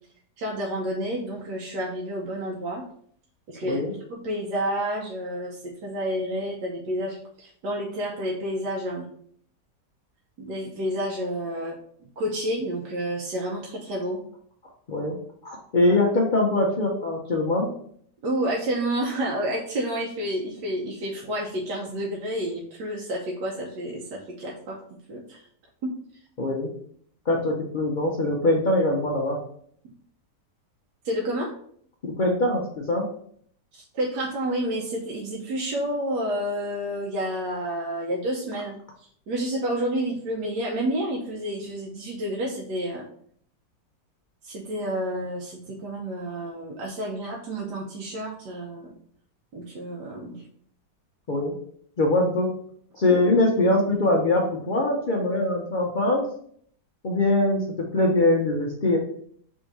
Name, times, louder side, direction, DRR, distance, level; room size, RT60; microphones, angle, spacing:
voice 1, 0.4-2.8 3.5-3.8 4.1-9.1 10.4-14.2 15.8-15.9 18.2-24.8 25.1-25.5 25.8-25.9 31.0-31.5 33.7-43.0 44.4-48.9 49.5-50.5, right 1 dB, 75° right, -3 dB, 1.3 m, -30 dB
voice 2, 15.4-17.7 26.4-26.7 27.3-29.4 32.2-33.1 51.3-51.5 52.0-52.5 52.9-56.2 57.0-59.0, left 2 dB, 75° left, -1 dB, 0.4 m, -22 dB
3.7 x 2.7 x 4.6 m, 0.62 s
omnidirectional pair, 1.8 m